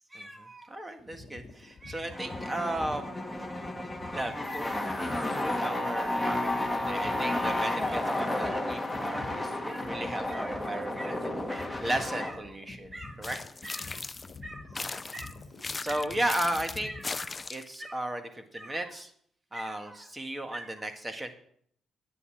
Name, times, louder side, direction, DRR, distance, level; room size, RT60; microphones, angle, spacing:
voice 1, 0.1-3.1 4.1-4.7 5.1-6.4 6.7-13.4 13.6-14.0 14.4-14.6 14.9-15.3 15.8-19.1 19.5-21.3, right 1 dB, 20° right, 7 dB, 1.7 m, -35 dB
sound 1, 1.0-17.1, left 3 dB, 40° left, 1.8 m, -48 dB
sound 2, 2.1-12.3, left 1 dB, 5° left, 1.8 m, -32 dB
sound 3, 13.2-14.4 14.8-17.8, left 3 dB, 25° left, 0.3 m, -38 dB
9.7 x 8.2 x 7.2 m, 0.65 s
cardioid pair, 90°, 0 cm